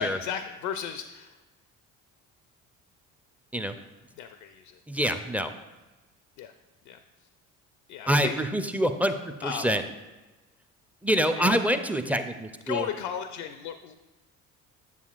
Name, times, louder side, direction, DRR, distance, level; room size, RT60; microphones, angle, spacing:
voice 1, 0.0-1.3 4.2-4.8 6.4-6.5 6.9-7.0 7.9-8.3 9.4-9.7 11.3-11.6 12.7-13.9, left 8 dB, 70° left, 8 dB, 0.6 m, -34 dB
voice 2, 4.9-5.5 8.1-9.1 9.4-9.8 11.0-12.9, equal, 5° right, 8 dB, 0.4 m, -26 dB
8.3 x 6.9 x 2.4 m, 1.1 s
hypercardioid pair, 55°, 41 cm